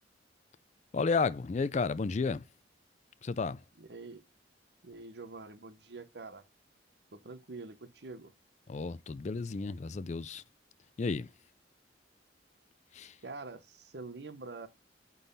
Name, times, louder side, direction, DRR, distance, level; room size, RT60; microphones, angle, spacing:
voice 1, 0.9-2.4 3.2-3.6 8.7-10.4 11.0-11.3 12.9-13.2, left 4 dB, 40° left, 0.4 m, -32 dB
voice 2, 3.8-4.2 4.8-6.4 7.1-8.3 13.2-14.7, right 3 dB, 60° right, 0.8 m, -45 dB
9.0 x 3.9 x 4.0 m
head